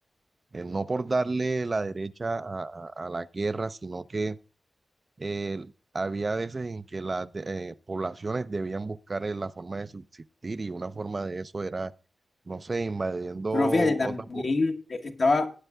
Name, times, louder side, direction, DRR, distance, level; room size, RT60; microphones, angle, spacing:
voice 1, 0.5-4.4 5.2-11.9 12.5-14.4, right 3 dB, 45° right, 0.4 m, -31 dB
voice 2, 13.5-15.5, left 3 dB, 60° left, 1.1 m, -25 dB
17.5 x 9.0 x 2.3 m
cardioid pair, 55°, 0 cm